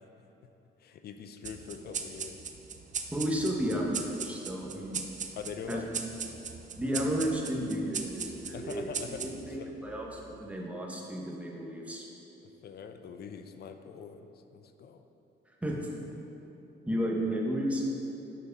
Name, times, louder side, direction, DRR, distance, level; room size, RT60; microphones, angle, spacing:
voice 1, 0.8-2.4 5.4-5.9 8.5-9.7 12.6-15.0, left 6 dB, 55° left, 8 dB, 0.5 m, -43 dB
sound 1, 1.4-10.3, right 6 dB, 40° right, 0.5 m, -40 dB
voice 2, 3.1-5.0 5.7-5.8 6.8-8.9 9.2-12.1 15.5-16.2 16.8-17.8, equal, 5° right, -2 dB, 1.1 m, -33 dB
6.9 x 4.7 x 5.2 m, 2.9 s
cardioid pair, 90°, 20 cm